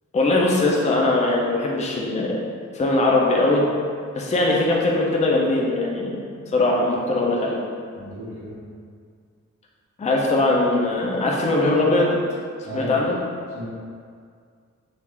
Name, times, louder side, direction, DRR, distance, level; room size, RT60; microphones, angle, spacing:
voice 1, 0.1-2.4 2.7-3.6 4.1-6.2 6.5-7.6 10.0-12.1 12.7-13.2, left 2 dB, 25° left, -2 dB, 0.4 m, -20 dB
voice 2, 7.9-8.6 12.6-12.9 13.5-13.7, equal, 50° right, -10 dB, 1.0 m, -34 dB
3.5 x 2.4 x 3.2 m, 2.1 s
wide cardioid pair, 170°, 30 cm